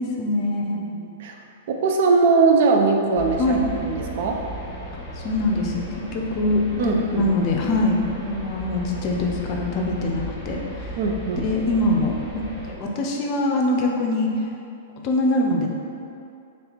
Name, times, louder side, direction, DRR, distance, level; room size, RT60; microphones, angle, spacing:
voice 1, 0.0-0.8 3.4-3.7 4.9-5.8 6.1-10.6 11.4-14.3 15.0-15.7, left 2 dB, 35° left, 0 dB, 0.5 m, -23 dB
voice 2, 0.9-1.3 1.7-4.4 6.8-7.3 11.0-11.5, right 4 dB, 50° right, 2 dB, 0.4 m, -21 dB
sound 1, 3.2-12.7, equal, 10° left, 1.2 m, -36 dB
3.2 x 2.8 x 4.1 m, 2.5 s
figure-of-eight pair, 105°, 0 cm